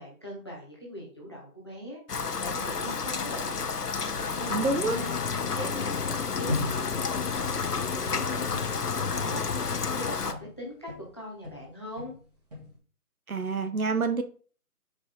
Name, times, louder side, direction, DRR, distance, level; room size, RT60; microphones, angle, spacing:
voice 1, 0.0-3.7 4.3-12.1, equal, 15° left, 1.1 m, -41 dB
Rain, 2.1-10.3, left 5 dB, 85° left, 1.0 m, -31 dB
sound 1, 4.2-10.2, left 6 dB, 60° left, 0.6 m, -35 dB
voice 2, 4.5-5.0 13.3-14.2, right 3 dB, 65° right, 1.0 m, -27 dB
sound 2, 6.5-11.2 11.4-12.7, left 2 dB, 25° right, 2.0 m, -38 dB
6.2 x 4.9 x 3.9 m
figure-of-eight pair, 170°, 46 cm